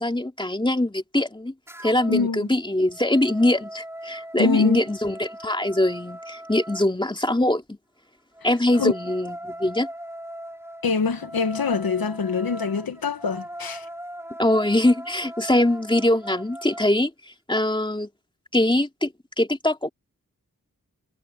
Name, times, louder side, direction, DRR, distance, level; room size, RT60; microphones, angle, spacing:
voice 1, 0.0-1.5 1.8-7.8 8.4-9.9 14.4-17.1 17.5-18.1 18.5-19.1 19.4-19.9, left 1 dB, 15° left, 2.7 m, -22 dB
sound 1, 1.7-2.3 2.7-6.9 8.3-16.9, equal, 5° right, 4.0 m, -39 dB
voice 2, 2.1-2.5 4.4-4.8 8.8-8.9 10.8-13.9, left 5 dB, 80° left, 1.3 m, -24 dB
cardioid pair, 45°, 35 cm